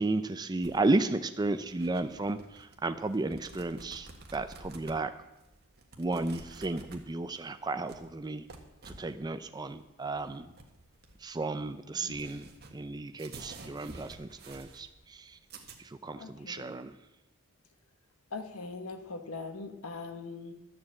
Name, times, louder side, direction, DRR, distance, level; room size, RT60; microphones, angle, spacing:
voice 1, 0.0-5.1 6.0-8.4 8.9-10.5 11.2-15.4 15.8-17.0, right 2 dB, 20° right, 9 dB, 0.4 m, -33 dB
sound 1, 0.6-15.8, right 3 dB, 45° right, 1.4 m, -51 dB
voice 2, 16.1-16.8 18.3-20.5, left 3 dB, 75° left, 7 dB, 1.3 m, -41 dB
12.5 x 7.3 x 7.7 m, 0.98 s
head